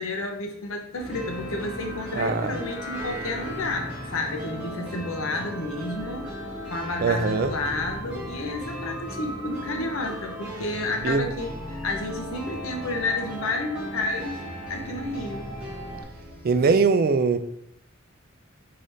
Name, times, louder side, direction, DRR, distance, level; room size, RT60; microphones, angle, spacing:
voice 1, 0.0-6.3 6.7-15.5, left 2 dB, 85° left, 3 dB, 0.8 m, -31 dB
sound 1, 0.9-7.3, left 2 dB, 50° left, 0.6 m, -43 dB
sound 2, 0.9-16.7, left 1 dB, 10° left, 1.0 m, -42 dB
sound 3, 1.0-16.0, equal, 5° right, 1.3 m, -38 dB
voice 2, 2.1-2.6 7.0-7.5 11.0-11.3 16.4-17.4, right 4 dB, 45° right, 9 dB, 0.4 m, -22 dB
3.8 x 3.5 x 4.0 m, 0.70 s
head